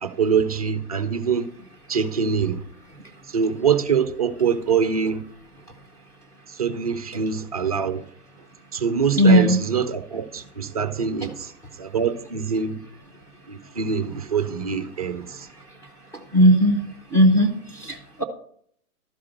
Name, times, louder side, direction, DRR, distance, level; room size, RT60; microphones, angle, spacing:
voice 1, 0.0-1.5 1.9-2.6 3.3-5.2 6.5-8.0 8.7-11.5 11.8-12.8 13.5-15.5, right 6 dB, 25° right, 0.5 m, -24 dB
voice 2, 9.1-9.6 16.3-16.8 17.1-18.2, equal, 5° left, 0.8 m, -16 dB
12.5 x 4.8 x 6.2 m
figure-of-eight pair, 130°, 45 cm